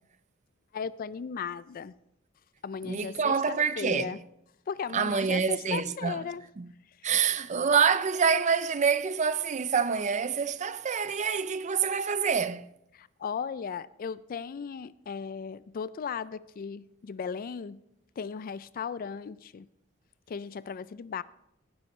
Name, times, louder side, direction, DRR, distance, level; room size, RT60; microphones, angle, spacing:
voice 1, 0.7-1.9 2.6-4.2 4.7-6.4 7.0-7.1 12.9-17.8 18.2-19.7 20.3-21.2, left 6 dB, 45° left, 0.3 m, -36 dB
voice 2, 2.8-4.2 4.9-6.2 6.6-6.7 7.0-12.7, right 6 dB, 35° right, 0.5 m, -26 dB
17.5 x 10.5 x 3.2 m
head